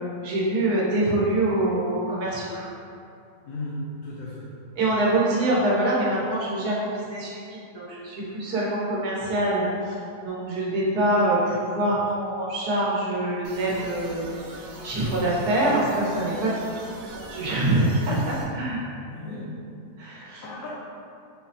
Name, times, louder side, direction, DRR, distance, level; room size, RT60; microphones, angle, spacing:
voice 1, 0.2-2.7 4.8-14.3 14.8-18.8 20.0-20.4, right 1 dB, 85° right, -6 dB, 1.3 m, -25 dB
voice 2, 3.4-4.5 4.8-5.0 19.0-19.5 20.4-20.7, left 2 dB, 70° left, -7 dB, 1.0 m, -35 dB
sound 1, 13.4-18.4, right 2 dB, 70° right, 1.0 m, -41 dB
5.6 x 2.0 x 2.6 m, 2.5 s
omnidirectional pair, 1.6 m